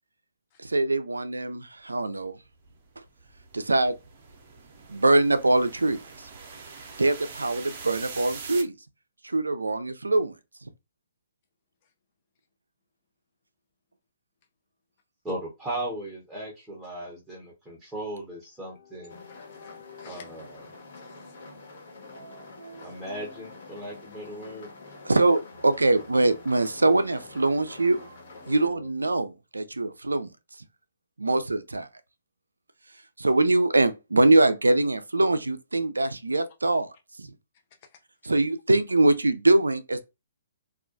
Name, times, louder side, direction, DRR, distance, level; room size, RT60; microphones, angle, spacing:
voice 1, 0.6-2.4 3.5-4.0 4.9-6.0 7.0-8.7 9.2-10.3 25.0-28.1 28.5-30.3 31.2-31.9 33.2-36.9 37.2-37.3 38.2-40.0, right 2 dB, 90° right, 0.3 m, -23 dB
sound 1, 2.6-8.6, right 5 dB, 45° right, 0.6 m, -43 dB
voice 2, 15.2-19.2 20.0-20.4 22.8-24.7, right 1 dB, 10° right, 0.8 m, -37 dB
sound 2, 18.6-28.9, left 3 dB, 80° left, 0.9 m, -51 dB
rain-outside-the-car, 19.1-28.7, left 3 dB, 60° left, 1.2 m, -47 dB
voice 3, 19.3-20.2 20.9-21.3 22.8-22.9 37.8-38.3, left 7 dB, 40° left, 0.5 m, -55 dB
2.3 x 2.1 x 2.5 m
figure-of-eight pair, 130°, 0 cm